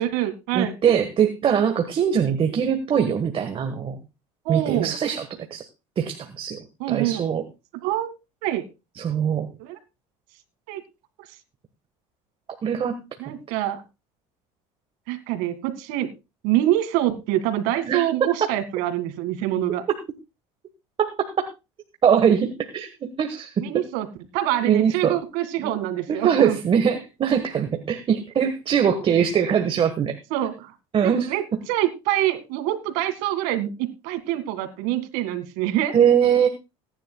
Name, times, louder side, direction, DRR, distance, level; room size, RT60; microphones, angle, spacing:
voice 1, 0.0-0.7 4.4-4.9 6.8-7.3 7.8-8.1 8.4-8.6 9.6-9.8 10.7-10.8 13.2-13.8 15.1-16.1 16.4-19.8 23.6-24.1 24.3-26.6 30.3-30.7 31.0-36.0, right 13 dB, 75° right, 10 dB, 2.1 m, -25 dB
voice 2, 0.5-4.0 4.5-5.2 5.5-5.6 6.0-7.4 9.0-9.5 12.6-12.9 13.3-13.4 17.9-18.0 18.4-18.5 21.0-21.1 21.4-21.5 22.0-22.9 23.2-23.8 24.6-25.2 25.6-25.7 26.1-30.2 30.9-31.3 35.9-36.5, right 8 dB, 40° right, 7 dB, 1.5 m, -22 dB
20.5 x 10.5 x 2.3 m, 0.27 s
supercardioid pair, 100°, 15 cm